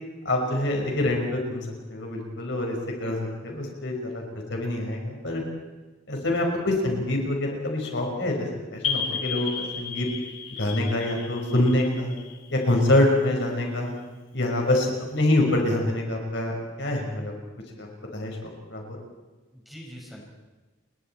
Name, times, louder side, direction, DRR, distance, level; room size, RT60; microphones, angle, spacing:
voice 1, 0.3-4.2 4.5-5.4 6.1-10.1 10.6-12.1 12.5-13.9 14.3-17.3 17.8-19.0, left 1 dB, 60° left, 1 dB, 5.3 m, -26 dB
sound 1, 8.8-13.3, left 6 dB, 80° left, 2.3 m, -33 dB
voice 2, 19.5-20.2, equal, ahead, -2 dB, 5.5 m, -44 dB
29.5 x 23.0 x 4.5 m, 1.2 s
head